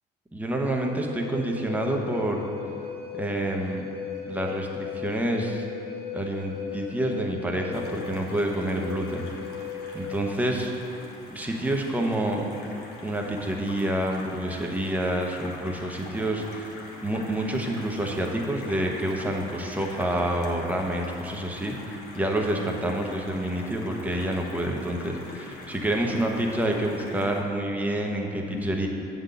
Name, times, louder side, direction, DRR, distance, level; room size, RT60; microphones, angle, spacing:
voice 1, 0.3-2.5 3.1-3.8 4.3-5.7 6.1-9.3 9.9-10.7 11.3-12.4 13.0-16.7 17.0-28.9, right 1 dB, 10° right, 1 dB, 0.9 m, -28 dB
Wind instrument woodwind instrument, 0.9-10.2, left 7 dB, 35° left, 1.7 m, -37 dB
sound 1, 7.7-27.4, left 2 dB, 80° left, 1.2 m, -44 dB
7.8 x 3.9 x 6.8 m, 2.9 s
cardioid pair, 110°, 17 cm